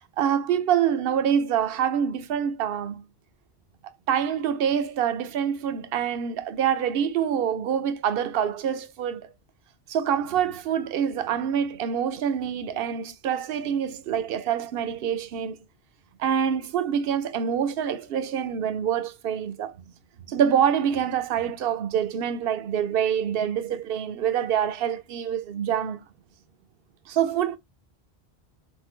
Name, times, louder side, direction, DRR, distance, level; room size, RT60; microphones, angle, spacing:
voice 1, 0.2-3.1 4.1-9.3 9.9-15.6 16.2-19.7 20.3-26.0 27.1-27.6, right 8 dB, 65° right, 0.8 m, -26 dB
4.0 x 3.6 x 3.0 m
omnidirectional pair, 1.1 m